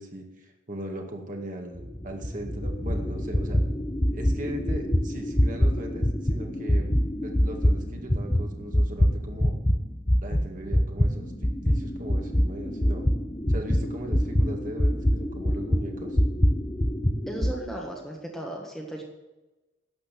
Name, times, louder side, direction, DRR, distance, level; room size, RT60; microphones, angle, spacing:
voice 1, 0.0-3.6 4.1-6.9 7.2-9.6 10.2-13.1 13.5-16.2, right 1 dB, 40° right, 2 dB, 2.1 m, -39 dB
sound 1, 1.7-9.8 10.1-17.6, equal, 20° left, 0.8 m, -25 dB
voice 2, 17.3-19.0, right 1 dB, ahead, -1 dB, 1.5 m, -36 dB
11.5 x 9.0 x 7.5 m, 1.1 s
head